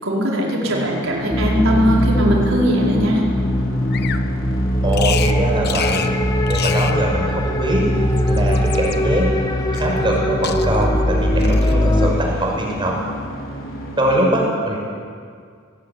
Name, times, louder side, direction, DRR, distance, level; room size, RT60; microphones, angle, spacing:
voice 1, 0.0-3.2, equal, 85° right, -3 dB, 4.9 m, -19 dB
sound 1, 0.6-14.1, left 1 dB, 75° left, 5.0 m, -31 dB
sound 2, 1.3-12.1, equal, 20° left, 1.6 m, -20 dB
Bird vocalization bird call bird song, 3.9-4.3 4.9-5.4 5.6-6.1 6.5-7.0 8.0-9.0 9.7-10.2 10.4-10.9 11.4-11.8, left 9 dB, 55° left, 1.1 m, -29 dB
voice 2, 4.8-6.2 6.5-9.3 9.8-13.0 14.0-14.8, right 1 dB, 25° right, -1 dB, 6.0 m, -22 dB
19.5 x 19.0 x 9.8 m, 2.1 s
head